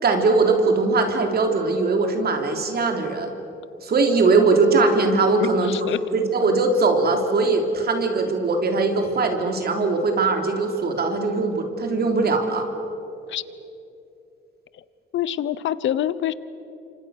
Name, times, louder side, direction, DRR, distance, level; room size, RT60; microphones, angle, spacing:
voice 1, 0.0-3.3 3.8-5.7 6.1-12.6, right 3 dB, 50° right, 4 dB, 3.6 m, -20 dB
voice 2, 5.4-6.0 13.3-13.4 14.7-14.8 15.1-16.3, left 11 dB, 70° left, 17 dB, 1.0 m, -26 dB
28.0 x 25.5 x 6.6 m, 2.8 s
cardioid pair, 90°, 20 cm